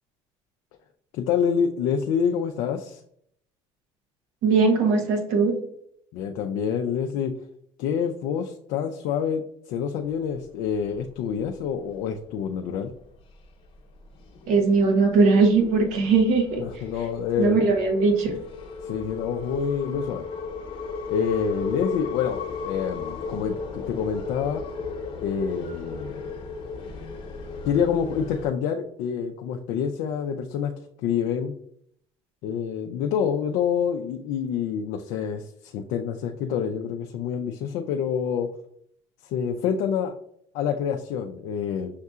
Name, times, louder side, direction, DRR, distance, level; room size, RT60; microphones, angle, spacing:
voice 1, 1.1-3.0 6.1-7.4 7.8-12.9 16.6-17.6 18.8-20.3 21.1-24.6 25.2-26.3 27.6-30.7 31.0-31.5 32.4-38.5 39.2-40.1 40.5-41.9, left 7 dB, 70° left, 4 dB, 0.4 m, -27 dB
voice 2, 4.4-5.6 14.5-16.6 17.4-18.3, right 4 dB, 75° right, 2 dB, 1.0 m, -20 dB
sound 1, 10.3-11.1 11.4-11.6 12.0-12.4 13.0-13.3 13.7-28.5, left 5 dB, 45° left, 1.0 m, -36 dB
6.4 x 2.7 x 2.3 m, 0.68 s
supercardioid pair, 85°, 13 cm